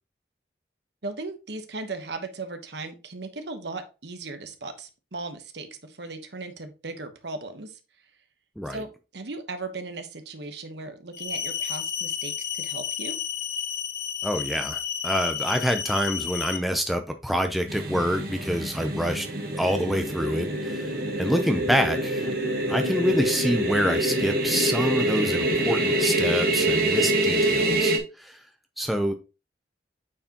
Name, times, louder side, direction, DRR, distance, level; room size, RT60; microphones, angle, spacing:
voice 1, 1.0-7.8 8.7-13.2, right 3 dB, 70° right, 1.1 m, -37 dB
sound 1, 11.1-16.6, left 8 dB, 60° left, 1.0 m, -31 dB
voice 2, 14.2-19.3 19.5-22.3 22.7-28.4 28.8-29.1, equal, ahead, 0.6 m, -27 dB
sound 2, 17.7-28.0, right 1 dB, 50° right, 1.5 m, -25 dB
8.7 x 4.8 x 2.9 m
head